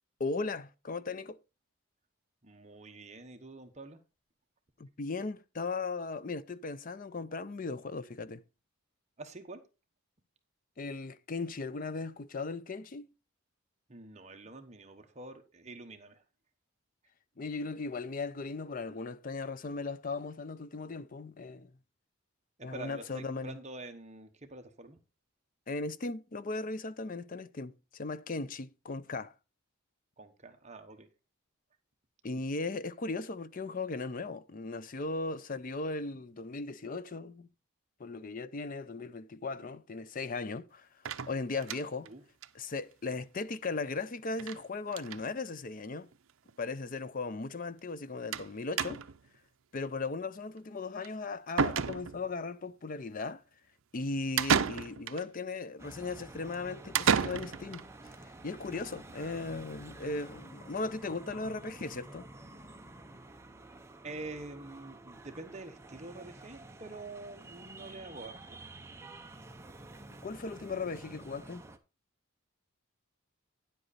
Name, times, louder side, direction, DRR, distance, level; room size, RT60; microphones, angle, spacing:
voice 1, 0.2-1.4 4.8-8.4 10.8-13.1 17.4-21.7 22.6-23.6 25.7-29.3 32.2-37.5 38.0-40.9 41.3-42.1 42.5-46.1 46.6-49.0 49.7-53.4 53.9-62.3 70.2-71.6, left 3 dB, 40° left, 0.5 m, -37 dB
voice 2, 2.4-4.0 9.2-9.6 13.9-16.2 22.6-25.0 30.2-31.1 42.0-42.2 64.0-68.6, right 2 dB, 30° right, 1.1 m, -46 dB
sound 1, 41.1-42.1 42.4-42.5 42.8-42.9 43.1-43.2 44.4-44.6 44.9-45.2 46.1-46.2 46.5-46.6 48.3-48.5 48.8-49.3 51.0-51.1 51.6-52.4 54.4-55.2 56.9-57.8, right 6 dB, 70° right, 0.6 m, -31 dB
sound 2, 55.8-71.8, right 2 dB, 10° right, 0.7 m, -50 dB
10.0 x 7.9 x 4.1 m
head